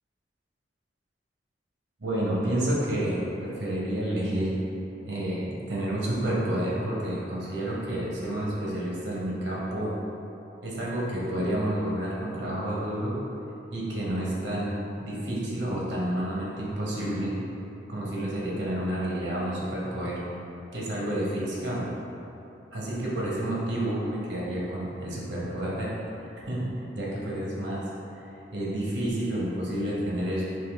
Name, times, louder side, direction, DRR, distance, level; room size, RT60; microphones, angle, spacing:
voice 1, 2.0-4.5 5.1-9.9 10.6-13.1 13.7-17.3 17.9-20.2 20.7-21.8 22.7-30.4, right 1 dB, 85° right, -5 dB, 0.9 m, -30 dB
3.8 x 2.8 x 3.3 m, 2.8 s
head